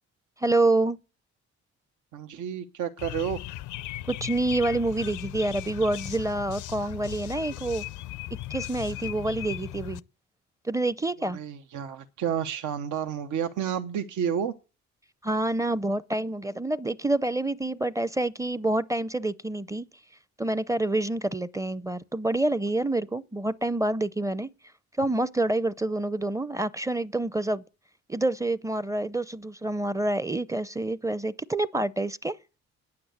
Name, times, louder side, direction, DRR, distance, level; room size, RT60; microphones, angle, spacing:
voice 1, 0.4-1.0 4.1-7.8 8.5-10.0 10.6-11.4 15.2-19.9 20.4-24.5 25.0-27.6 28.1-32.4, right 2 dB, 10° right, 0.6 m, -27 dB
voice 2, 2.1-3.4 11.2-14.5, right 8 dB, 80° right, 1.0 m, -30 dB
sound 1, 3.0-10.0, left 15 dB, 80° left, 0.5 m, -37 dB
9.6 x 8.6 x 8.0 m
cardioid pair, 90°, 30 cm